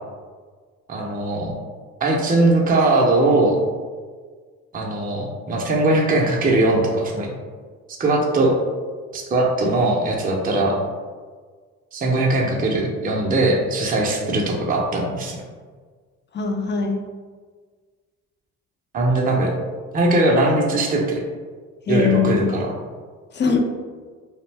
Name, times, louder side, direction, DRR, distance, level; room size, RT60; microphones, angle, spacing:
voice 1, 0.9-1.5 2.0-3.6 4.7-7.3 8.0-8.5 9.1-10.8 11.9-15.4 18.9-19.5 19.9-21.2 21.9-22.7, right 2 dB, 25° right, -1 dB, 0.5 m, -20 dB
voice 2, 16.3-17.0 21.9-22.4 23.3-23.6, left 5 dB, 30° left, 4 dB, 0.4 m, -21 dB
2.5 x 2.1 x 3.2 m, 1.5 s
hypercardioid pair, 55°, 38 cm